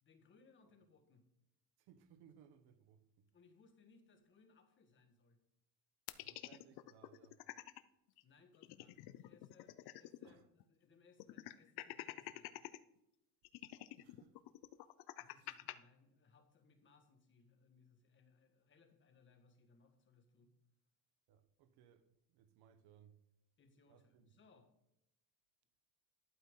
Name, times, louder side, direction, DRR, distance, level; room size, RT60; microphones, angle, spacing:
voice 1, 0.0-1.2 3.3-5.4 8.2-12.7 15.2-20.5 23.6-24.7, left 4 dB, 30° left, 1.7 m, -69 dB
voice 2, 1.8-3.3 6.2-7.5 10.2-10.5 14.0-14.4 15.3-15.6 21.3-23.2 23.9-24.3, right 8 dB, 75° right, 1.2 m, -66 dB
sound 1, 6.1-7.8 8.2-8.3 8.5-10.3 10.6-10.7 11.2-12.8 13.4-15.7, left 16 dB, 75° left, 0.7 m, -49 dB
11.5 x 8.8 x 3.8 m
cardioid pair, 155°, 39 cm